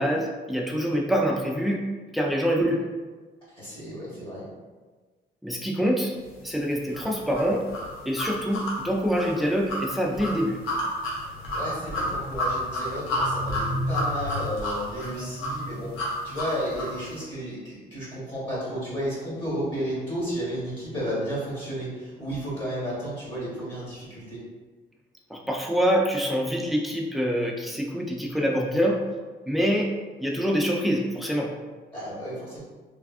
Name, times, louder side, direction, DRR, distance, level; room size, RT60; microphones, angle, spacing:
voice 1, 0.0-1.8 2.1-2.8 5.4-6.2 6.4-7.6 8.1-10.6 25.3-29.0 29.5-29.9 30.2-31.5, equal, ahead, -1 dB, 0.4 m, -25 dB
voice 2, 3.6-4.5 11.5-24.4 31.9-32.6, equal, 25° left, -8 dB, 1.5 m, -33 dB
sound 1, 6.9-17.0, left 1 dB, 90° left, 0.8 m, -30 dB
3.3 x 2.3 x 2.4 m, 1.4 s
cardioid pair, 90°, 20 cm